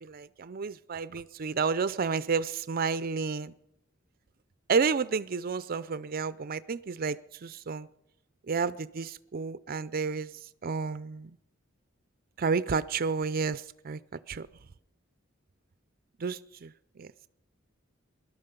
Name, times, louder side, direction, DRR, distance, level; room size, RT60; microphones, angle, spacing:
voice 1, 0.0-3.5 4.7-7.9 8.5-10.3 10.6-11.3 12.4-14.0 14.3-14.5 16.2-17.1, right 5 dB, 50° right, 16 dB, 0.5 m, -31 dB
19.5 x 12.0 x 5.3 m, 0.84 s
head